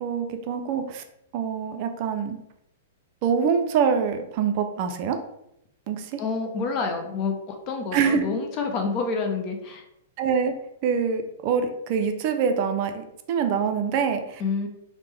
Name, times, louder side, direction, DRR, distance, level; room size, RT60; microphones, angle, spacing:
voice 1, 0.0-1.0 1.3-2.4 3.2-5.2 5.9-6.2 7.9-8.3 10.2-10.5 10.8-14.4, right 6 dB, 45° right, 6 dB, 0.4 m, -25 dB
voice 2, 6.2-9.8 14.4-14.7, left 4 dB, 35° left, 4 dB, 0.6 m, -28 dB
3.3 x 2.1 x 3.2 m, 0.79 s
hypercardioid pair, 125°, 0 cm